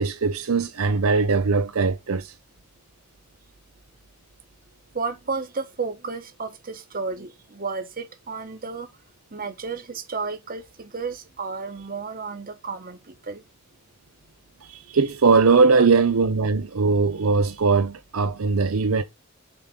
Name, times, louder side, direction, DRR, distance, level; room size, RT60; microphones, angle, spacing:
voice 1, 0.0-2.3 14.7-19.0, right 4 dB, 70° right, 0.6 m, -20 dB
voice 2, 4.9-8.9 9.3-13.4 15.7-16.0, right 4 dB, 40° right, 1.2 m, -32 dB
6.8 x 3.7 x 6.0 m
head